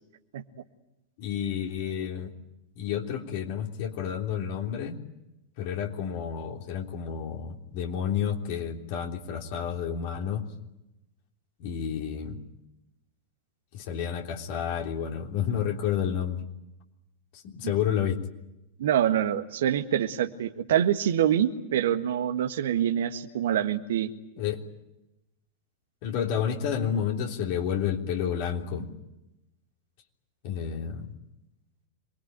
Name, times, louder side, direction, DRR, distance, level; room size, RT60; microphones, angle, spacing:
voice 1, 1.2-2.3 2.8-5.0 5.6-10.5 11.6-12.4 13.7-16.4 17.3-18.2 24.4-24.6 26.0-28.9 30.4-31.1, left 8 dB, 50° left, 2 dB, 3.4 m, -30 dB
voice 2, 18.8-24.1, right 10 dB, 60° right, 8 dB, 1.6 m, -25 dB
27.0 x 22.0 x 9.0 m, 0.91 s
figure-of-eight pair, 90°, 0 cm